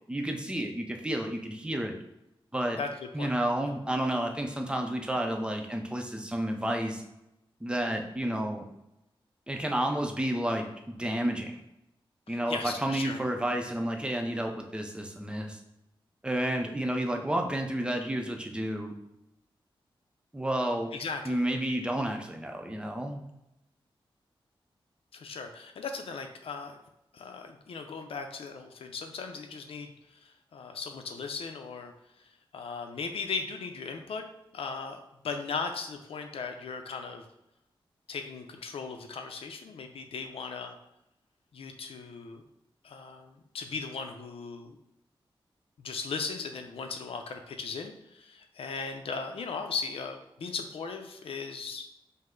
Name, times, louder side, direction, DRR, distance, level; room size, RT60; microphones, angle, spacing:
voice 1, 0.1-1.9 2.5-2.8 3.1-7.0 7.6-8.6 9.5-11.6 12.3-15.6 16.2-18.9 20.3-20.9 21.3-23.2, right 1 dB, 10° right, 3 dB, 0.5 m, -31 dB
voice 2, 2.8-3.3 3.6-3.8 12.3-13.2 20.9-21.4 25.1-26.8 27.1-31.9 32.2-34.3 34.5-37.3 38.1-40.8 41.5-42.4 42.8-44.8 45.8-51.9, left 5 dB, 90° left, 5 dB, 0.5 m, -38 dB
5.3 x 2.0 x 3.7 m, 0.87 s
wide cardioid pair, 105°, 9 cm